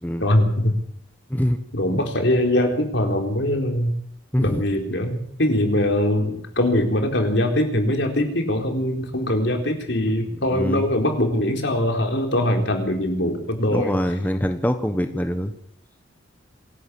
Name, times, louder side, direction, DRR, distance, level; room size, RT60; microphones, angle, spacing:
voice 1, 0.2-0.7 1.7-3.9 4.4-14.0, left 1 dB, 65° left, 4 dB, 4.1 m, -22 dB
voice 2, 1.3-1.6 4.3-4.6 10.5-10.8 13.7-15.5, equal, 10° left, 7 dB, 1.2 m, -23 dB
27.0 x 11.5 x 8.5 m, 0.67 s
head